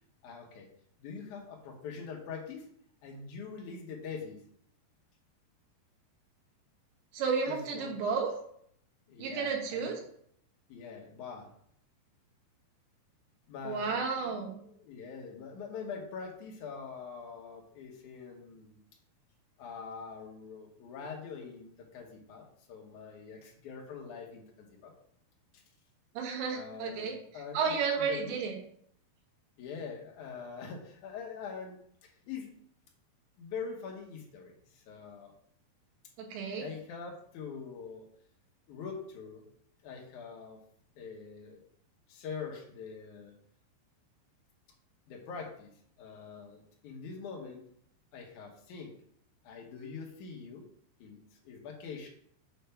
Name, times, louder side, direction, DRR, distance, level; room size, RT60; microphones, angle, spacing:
voice 1, 0.2-0.7 1.0-2.7 3.0-4.4 7.5-7.9 9.1-9.8 10.7-11.5 13.5-14.3 14.6-18.8 19.6-24.9 25.5-25.6 26.5-28.4 29.6-32.6 33.4-35.3 36.6-38.1 38.7-39.4 39.8-40.6 41.0-41.6 42.1-43.3 45.1-45.7 46.0-47.6 48.1-48.9 49.4-50.7 51.0-51.2 51.4-52.1, left 5 dB, 80° left, 0 dB, 1.7 m, -44 dB
voice 2, 7.1-8.3 9.2-10.0 13.7-14.5 26.2-27.2 27.5-28.6 36.2-36.7, right 5 dB, 80° right, 1 dB, 3.5 m, -32 dB
7.9 x 3.4 x 5.6 m, 0.65 s
omnidirectional pair, 5.3 m